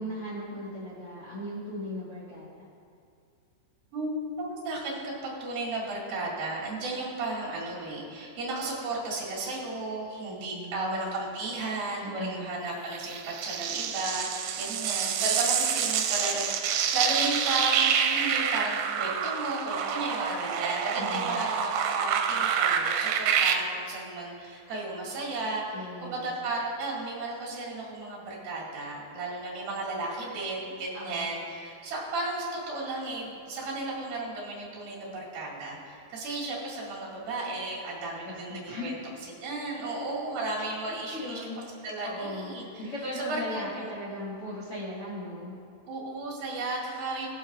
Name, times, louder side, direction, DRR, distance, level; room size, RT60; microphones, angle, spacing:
voice 1, 0.0-2.7 10.2-11.2 12.0-12.5 21.0-21.4 25.7-26.3 30.9-31.3 38.2-38.9 40.6-40.7 41.1-45.6, left 1 dB, 85° left, -9 dB, 1.2 m, -38 dB
voice 2, 3.9-39.0 39.4-41.4 41.8-43.9 45.9-47.3, right 2 dB, 60° right, -5 dB, 3.5 m, -34 dB
sound 1, 12.9-23.5, right 7 dB, 85° right, 3.1 m, -27 dB
20.5 x 7.0 x 2.5 m, 2.4 s
omnidirectional pair, 5.4 m